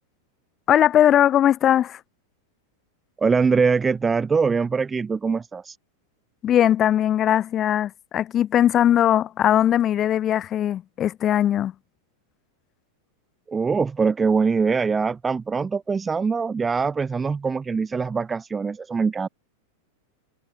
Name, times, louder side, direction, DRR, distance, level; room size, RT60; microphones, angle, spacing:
voice 1, 0.7-2.0 6.4-11.7, left 11 dB, 30° left, 0.6 m, -19 dB
voice 2, 3.2-5.8 13.5-19.3, right 5 dB, 15° right, 1.3 m, -23 dB
figure-of-eight pair, 90°, 0 cm